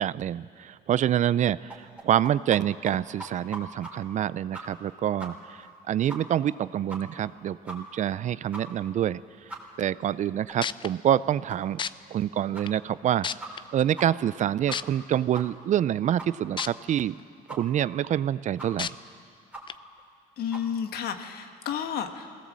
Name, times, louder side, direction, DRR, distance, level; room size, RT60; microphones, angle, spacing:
voice 1, 0.0-9.2 9.8-11.8 12.1-17.1 17.5-18.9, right 10 dB, 45° right, 18 dB, 0.4 m, -27 dB
sound 1, 1.7-2.6 2.8-2.9 3.2-3.9 4.2-4.3 4.5-4.9 5.2-5.3 5.6-5.7 6.1-6.2 6.5-6.6 6.9-7.2 7.7-7.8 8.1-8.2 8.5-8.6 9.0-9.1 9.5-9.6 10.0-10.1 10.5-10.6 10.9-11.0 11.5-11.6 12.0-12.1 12.5-12.6 13.0-13.1 13.4-13.7 13.9-14.0 14.3-14.4 14.7-15.0 15.3-15.4 15.8-15.9 16.2-16.3 16.5-16.6 17.0-17.1 17.5-17.6 18.0-18.1 18.6-18.7 19.0-19.1 19.5-19.6 20.0-20.1 20.5-20.6, right 2 dB, 10° right, 3.3 m, -40 dB
sound 2, 10.2-10.3 10.6-10.9 11.8-11.9 12.7-12.8 13.2-13.6 14.7-14.8 16.6-16.7 17.2-17.3 18.8-18.9 19.7-19.8, left 7 dB, 30° left, 0.4 m, -30 dB
voice 2, 20.4-22.4, left 8 dB, 65° left, 7 dB, 1.5 m, -31 dB
20.5 x 17.5 x 7.5 m, 2.2 s
cardioid pair, 110°, 17 cm